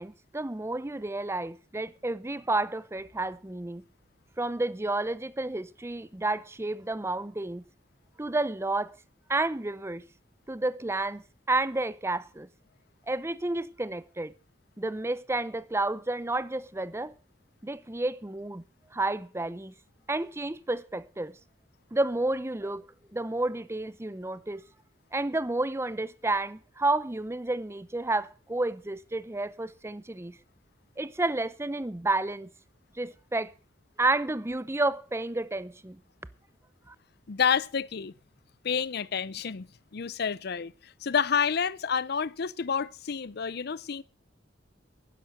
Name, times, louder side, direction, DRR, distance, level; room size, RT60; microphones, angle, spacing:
voice 1, 0.0-3.8 4.4-7.6 8.2-8.9 9.3-10.0 10.5-12.5 13.1-14.3 14.8-17.1 17.6-18.6 18.9-19.7 20.1-21.3 21.9-22.8 23.1-24.6 25.1-30.4 31.0-32.5 33.0-33.5 34.0-36.0 36.9-37.0, right 2 dB, 15° right, 0.6 m, -30 dB
voice 2, 37.3-38.1 38.6-44.0, left 6 dB, 55° left, 0.6 m, -29 dB
12.0 x 10.5 x 6.4 m
head